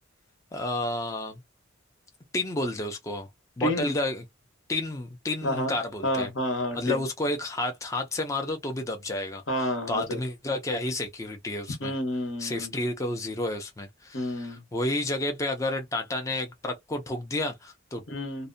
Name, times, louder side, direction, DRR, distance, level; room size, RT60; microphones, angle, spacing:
voice 1, 0.5-1.4 2.3-3.3 3.6-4.2 4.7-6.3 6.7-11.9 12.4-18.0, left 2 dB, 15° left, 0.4 m, -31 dB
voice 2, 3.6-3.9 5.4-5.7 6.0-7.0 9.5-10.2 11.8-12.7 14.1-14.6 18.1-18.5, left 1 dB, 75° left, 1.0 m, -29 dB
2.6 x 2.0 x 2.5 m
head